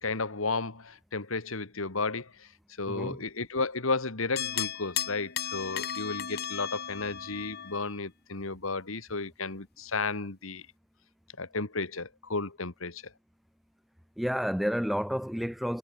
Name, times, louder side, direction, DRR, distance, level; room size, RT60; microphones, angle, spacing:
voice 1, 0.0-2.5 2.8-10.6 11.4-13.0, left 3 dB, 70° left, 2.1 m, -33 dB
voice 2, 2.9-3.2 14.2-15.8, equal, ahead, 0.5 m, -30 dB
sound 1, 4.4-7.9, left 9 dB, 50° left, 3.2 m, -35 dB
head